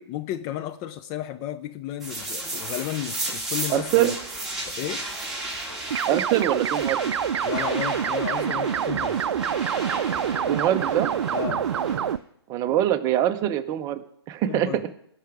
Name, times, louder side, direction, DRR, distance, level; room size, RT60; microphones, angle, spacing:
voice 1, 0.0-4.2 4.7-5.1 7.4-9.2 11.3-11.7 14.5-14.8, left 12 dB, 25° left, 0.4 m, -33 dB
sound 1, 2.0-12.1, right 2 dB, ahead, 2.6 m, -34 dB
voice 2, 3.7-4.1 6.1-7.1 10.5-11.1 12.5-14.7, right 12 dB, 25° right, 0.8 m, -24 dB
sound 2, 5.9-12.2, right 8 dB, 75° right, 0.4 m, -26 dB
17.5 x 5.9 x 4.7 m
hypercardioid pair, 135°, 14 cm